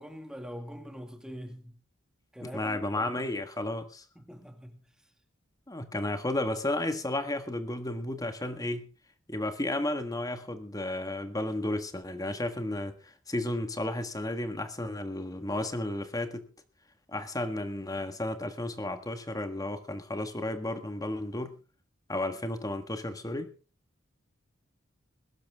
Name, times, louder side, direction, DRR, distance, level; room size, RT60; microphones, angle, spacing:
voice 1, 0.0-1.8 2.3-3.3 4.2-4.8, equal, 5° right, 2.1 m, -43 dB
voice 2, 2.4-4.0 5.7-8.9 9.3-16.5 17.1-21.6 22.1-23.5, left 1 dB, 20° left, 1.6 m, -33 dB
21.5 x 12.0 x 3.6 m
head